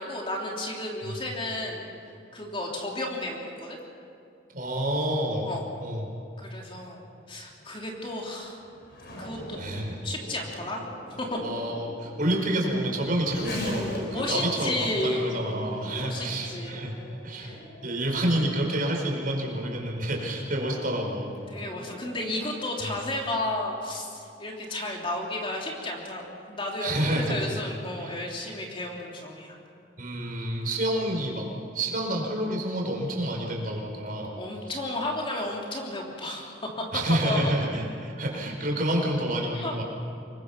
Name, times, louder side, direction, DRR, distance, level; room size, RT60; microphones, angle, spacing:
voice 1, 0.0-1.9 2.3-3.8 5.4-5.6 6.4-8.6 9.2-9.6 10.0-10.9 11.2-11.4 14.1-15.4 15.9-16.8 17.3-17.6 21.5-29.6 34.3-36.7 37.2-37.5 39.5-39.8, left 1 dB, 30° left, -1 dB, 3.2 m, -33 dB
voice 2, 4.5-5.5 5.8-6.0 9.6-10.0 11.4-14.7 15.0-17.5 17.8-21.3 26.8-27.6 28.0-28.1 30.0-31.5 31.7-34.3 36.9-39.8, right 1 dB, 50° right, 0 dB, 4.9 m, -28 dB
Race car auto racing / Accelerating revving vroom, 7.2-23.3, left 1 dB, 60° left, 5.1 m, -41 dB
26.0 x 22.5 x 6.0 m, 2.6 s
head